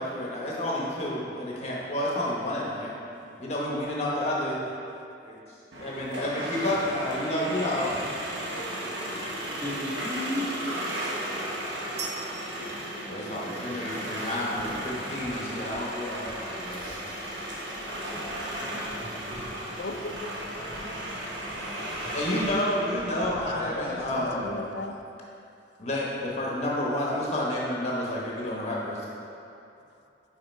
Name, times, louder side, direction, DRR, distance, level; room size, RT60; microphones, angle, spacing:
voice 1, 0.0-3.0 3.4-4.6 5.2-8.0 13.1-17.0 22.1-24.6 25.8-29.0, left 1 dB, 35° left, -4 dB, 1.1 m, -30 dB
sound 1, 5.7-23.3, right 1 dB, 90° right, 1.1 m, -35 dB
voice 2, 9.6-11.0 12.6-13.5 23.5-24.5, left 1 dB, 15° right, -9 dB, 1.4 m, -36 dB
sound 2, 12.0-13.9, right 6 dB, 70° right, 0.7 m, -41 dB
sound 3, 14.5-25.1, equal, 15° left, 0.7 m, -51 dB
voice 3, 19.8-21.2 23.1-25.0, left 3 dB, 70° left, 6 dB, 0.4 m, -38 dB
5.7 x 4.8 x 4.5 m, 2.6 s
head